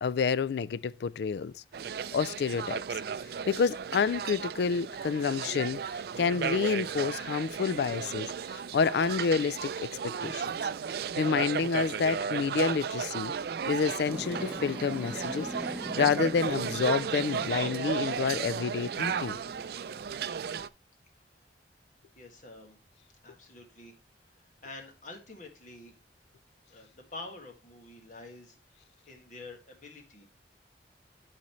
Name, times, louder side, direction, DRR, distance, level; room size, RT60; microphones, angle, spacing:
voice 1, 0.0-1.5 2.1-2.8 3.5-5.8 6.2-9.7 10.2-10.4 11.2-13.3 13.7-15.5 16.0-19.4, left 5 dB, 65° left, 0.3 m, -28 dB
sound 1, 1.7-20.7, right 7 dB, 60° right, 0.4 m, -35 dB
sound 2, 14.0-20.1, equal, 10° right, 1.1 m, -42 dB
voice 2, 22.2-22.8 23.2-23.9 24.4-25.9 26.7-28.6 29.1-30.4, left 2 dB, 45° left, 1.9 m, -47 dB
12.5 x 4.2 x 3.1 m
head